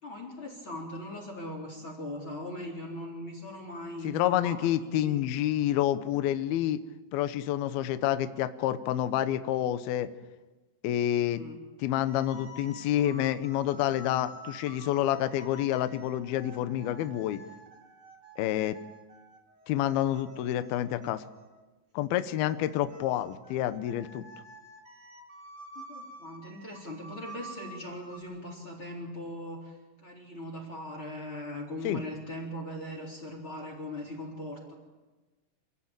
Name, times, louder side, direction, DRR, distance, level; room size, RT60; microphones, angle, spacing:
voice 1, 0.0-5.2 11.2-11.6 25.7-34.7, left 1 dB, 25° left, 1 dB, 4.2 m, -40 dB
voice 2, 4.0-6.8 7.1-10.1 10.8-11.4 11.8-17.4 18.4-18.8 19.7-21.2 21.9-24.3 31.8-32.0, left 12 dB, 75° left, 11 dB, 2.3 m, -28 dB
sound 1, 12.1-21.6 22.4-28.2, right 1 dB, 25° right, 3.4 m, -49 dB
27.5 x 17.0 x 9.0 m, 1.2 s
omnidirectional pair, 5.5 m